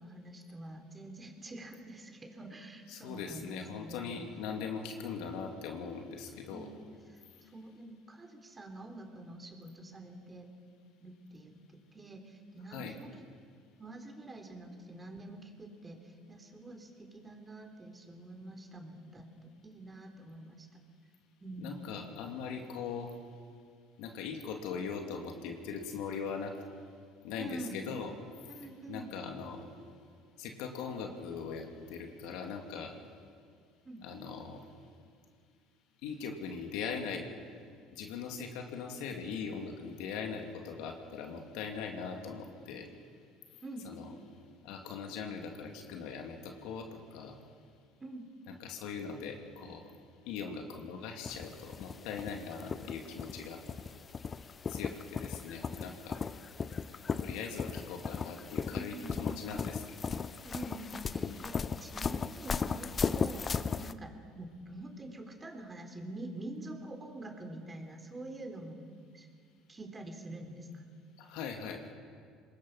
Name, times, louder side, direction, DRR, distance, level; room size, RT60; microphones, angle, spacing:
voice 1, 0.0-4.4 6.5-6.8 7.5-10.5 11.0-13.1 13.8-19.3 19.6-20.8 21.4-21.7 27.4-27.8 28.5-29.1 33.8-34.0 43.6-43.9 48.0-48.2 58.7-59.4 60.4-68.9 69.1-69.3 69.7-70.8, right 1 dB, 25° right, 4 dB, 3.9 m, -46 dB
voice 2, 2.9-6.7 12.7-12.9 21.6-23.1 24.0-26.5 27.2-28.1 28.9-29.7 30.4-32.9 34.0-34.6 36.0-37.3 37.9-42.9 43.8-44.1 44.6-47.4 48.5-49.9 50.3-53.6 54.7-56.2 57.2-60.1 61.2-61.4 71.2-71.9, left 6 dB, 70° left, 3 dB, 2.5 m, -40 dB
sound 1, 51.2-63.9, left 5 dB, 35° left, 0.8 m, -36 dB
25.5 x 20.0 x 5.8 m, 2.2 s
hypercardioid pair, 70°, 0 cm